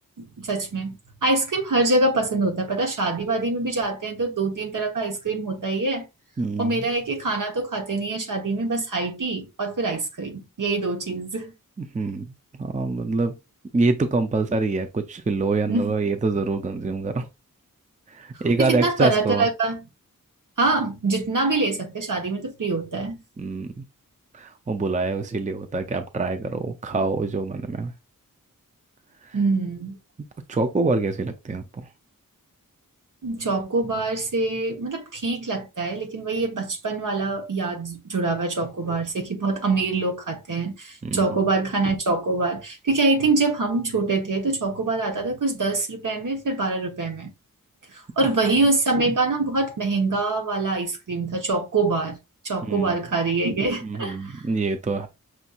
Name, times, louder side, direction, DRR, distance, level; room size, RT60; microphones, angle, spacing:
voice 1, 0.2-6.1 6.6-11.5 15.7-15.9 18.6-19.8 20.6-23.2 29.3-30.0 33.2-47.3 47.9-52.2 52.4-54.4, right 3 dB, 65° right, 1.2 m, -25 dB
voice 2, 6.4-6.8 11.8-12.3 12.6-13.4 13.7-17.3 18.1-19.5 23.4-23.8 24.3-27.9 29.2-29.4 30.5-31.9 41.0-41.3 52.6-53.0 53.8-55.1, right 3 dB, 20° right, 0.5 m, -25 dB
6.1 x 2.7 x 2.4 m
wide cardioid pair, 60°, 34 cm